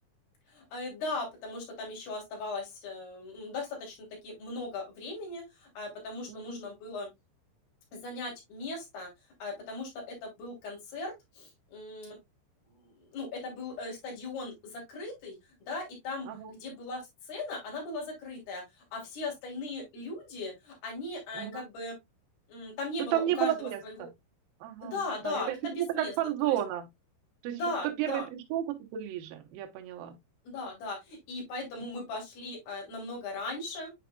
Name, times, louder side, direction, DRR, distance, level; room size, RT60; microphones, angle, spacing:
voice 1, 0.5-7.1 7.9-9.1 9.4-12.2 13.0-17.0 17.3-18.6 18.9-21.9 22.5-23.5 23.8-24.1 24.8-26.1 26.4-26.6 27.5-28.3 30.4-33.9, left 2 dB, 55° left, 4.6 m, -38 dB
voice 2, 6.3-6.6 16.3-16.5 21.3-21.6 23.1-24.1 24.6-25.6 26.0-26.9 27.4-27.6 28.0-28.7 28.9-30.2 31.8-31.9, right 12 dB, 90° right, 2.1 m, -32 dB
9.1 x 5.1 x 2.2 m
omnidirectional pair, 5.6 m